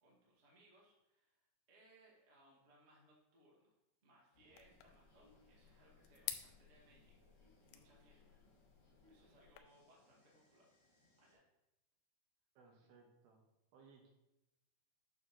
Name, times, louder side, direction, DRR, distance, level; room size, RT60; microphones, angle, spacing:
voice 1, 0.0-8.4 9.0-10.7 11.2-11.4, right 1 dB, 45° right, -4 dB, 0.8 m, -69 dB
sound 1, 4.3-11.3, left 1 dB, 55° left, 3.9 m, -71 dB
sound 2, 4.6-9.6, left 12 dB, 90° left, 2.7 m, -52 dB
voice 2, 12.6-13.4 13.7-14.1, right 4 dB, 75° right, 1 dB, 3.0 m, -64 dB
8.9 x 6.4 x 3.0 m, 0.92 s
omnidirectional pair, 4.8 m